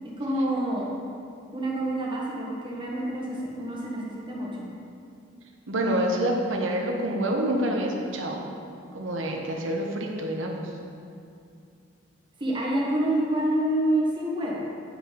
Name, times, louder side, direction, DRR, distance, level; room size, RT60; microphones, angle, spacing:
voice 1, 0.2-0.9 1.5-4.7 12.4-14.7, right 1 dB, 25° right, -4 dB, 1.5 m, -27 dB
voice 2, 5.7-8.4 8.9-10.6, right 1 dB, 90° right, 1 dB, 1.1 m, -27 dB
9.8 x 4.9 x 5.2 m, 2.5 s
head